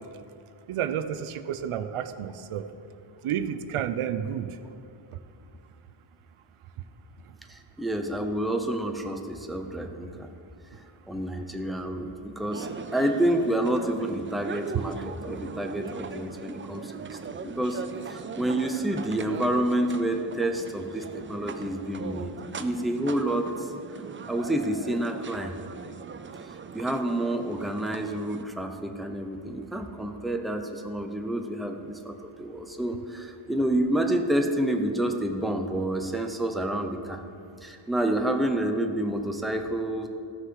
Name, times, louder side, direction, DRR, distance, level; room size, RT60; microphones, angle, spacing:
voice 1, 0.7-2.6 3.2-4.5, right 9 dB, 85° right, 10 dB, 0.6 m, -30 dB
voice 2, 7.5-10.3 11.1-17.8 18.1-23.7 24.3-25.6 26.5-37.2 37.6-40.1, right 1 dB, ahead, 4 dB, 0.7 m, -29 dB
sound 1, 12.5-28.4, right 5 dB, 25° right, 0.3 m, -40 dB
13.5 x 6.5 x 4.7 m, 2.5 s
cardioid pair, 95°, 50 cm